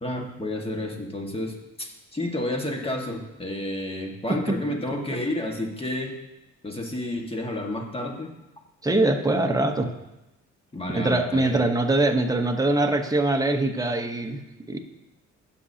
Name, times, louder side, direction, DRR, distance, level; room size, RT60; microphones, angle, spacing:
voice 1, 0.0-6.2 6.6-8.3 10.7-11.6, left 1 dB, 20° left, 1 dB, 1.7 m, -31 dB
voice 2, 8.8-9.9 10.9-14.4 14.7-14.8, right 2 dB, 10° right, 4 dB, 1.0 m, -23 dB
16.5 x 6.2 x 2.8 m, 0.97 s
cardioid pair, 90°, 30 cm